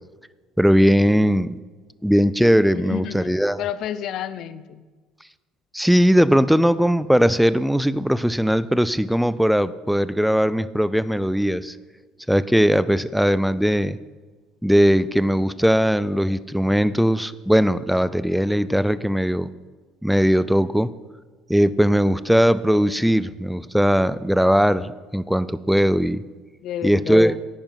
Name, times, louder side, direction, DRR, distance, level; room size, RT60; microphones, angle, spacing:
voice 1, 0.6-1.6 2.0-3.6 5.7-11.8 12.3-14.0 14.6-19.5 20.0-20.9 21.5-26.2 26.8-27.3, equal, ahead, 17 dB, 0.3 m, -19 dB
voice 2, 2.9-4.8 26.6-27.4, left 10 dB, 55° left, 15 dB, 0.6 m, -31 dB
10.5 x 9.1 x 5.7 m, 1.3 s
cardioid pair, 135°, 0 cm